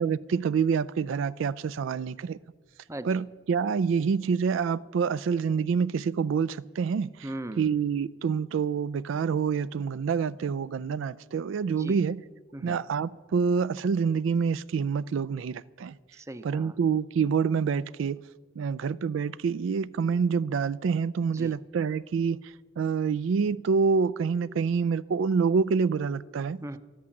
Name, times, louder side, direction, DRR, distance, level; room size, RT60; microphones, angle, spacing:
voice 1, 0.0-2.4 3.1-7.1 7.6-12.2 12.6-15.9 16.4-18.2 18.6-22.4 22.8-26.6, right 6 dB, 70° right, 0.3 m, -27 dB
voice 2, 2.9-3.2 7.2-7.7 11.7-12.0 12.5-12.8 16.1-16.8 21.3-21.6 26.6-26.8, right 1 dB, 15° right, 0.5 m, -39 dB
13.5 x 11.0 x 7.1 m
head